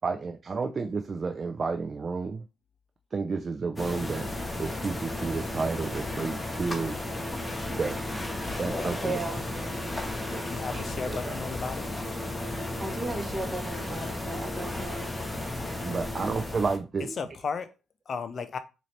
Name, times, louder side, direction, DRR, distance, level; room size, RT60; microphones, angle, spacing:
voice 1, 0.0-2.4 3.1-4.3 4.6-7.0 7.7-8.0 8.6-9.2 10.3-10.4 10.7-11.4 15.8-17.1, right 4 dB, 35° right, 0.4 m, -31 dB
sound 1, 3.8-16.8, left 1 dB, 15° left, 0.8 m, -34 dB
voice 2, 8.8-9.8 12.8-15.2, right 2 dB, 20° right, 1.2 m, -36 dB
voice 3, 10.4-12.0 17.2-17.7 18.1-18.6, left 5 dB, 50° left, 0.5 m, -34 dB
4.0 x 2.6 x 3.2 m
cardioid pair, 90°, 0 cm